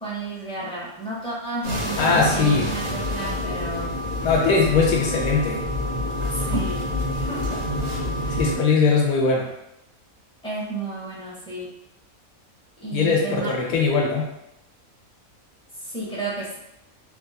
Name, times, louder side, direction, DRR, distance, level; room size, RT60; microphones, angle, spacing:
voice 1, 0.0-3.9 4.4-4.5 6.3-6.9 7.1-7.6 8.2-8.4 10.4-11.7 12.8-13.6 15.8-16.6, right 2 dB, 5° left, -7 dB, 0.5 m, -32 dB
sound 1, 1.6-8.6, left 1 dB, 55° right, 0.9 m, -27 dB
voice 2, 2.0-2.7 4.2-5.6 8.4-9.5 12.9-14.3, left 4 dB, 90° left, -1 dB, 1.0 m, -20 dB
3.0 x 2.6 x 2.2 m, 0.84 s
omnidirectional pair, 1.4 m